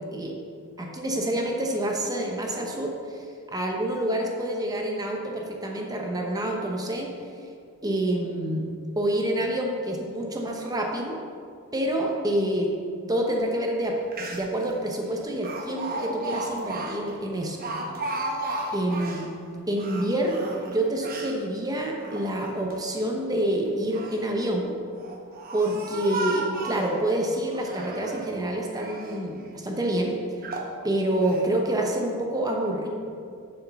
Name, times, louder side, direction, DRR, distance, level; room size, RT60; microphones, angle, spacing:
voice 1, 0.8-3.2 3.5-7.1 7.8-8.7 9.0-11.2 11.7-12.7 13.1-14.0 14.3-17.6 18.7-19.3 19.7-24.8 25.5-30.2 30.8-32.9, right 1 dB, 15° right, 0 dB, 0.9 m, -27 dB
Speech, 13.8-13.9 14.1-14.7 15.4-19.3 19.7-21.4 21.9-22.8 23.7-24.2 24.9-27.0 27.5-28.3 28.7-29.2 29.8-29.9 30.4-30.7 31.2-31.5, right 2 dB, 45° right, 1.0 m, -34 dB
7.2 x 6.5 x 6.9 m, 2.3 s
head